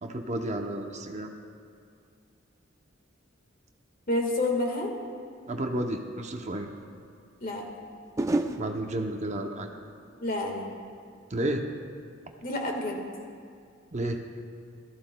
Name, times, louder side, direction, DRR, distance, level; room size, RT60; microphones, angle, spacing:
voice 1, 0.0-1.3 5.5-6.7 8.6-9.7 11.3-11.6 13.9-14.2, right 1 dB, 35° right, 3 dB, 0.7 m, -31 dB
voice 2, 4.1-4.9 7.4-7.6 10.2-10.8 12.4-13.0, left 2 dB, 45° left, 1 dB, 1.6 m, -29 dB
sound 1, 6.8-6.9 8.2-11.3 11.6-12.0, right 2 dB, 15° right, 0.4 m, -34 dB
17.0 x 14.0 x 2.3 m, 2.3 s
head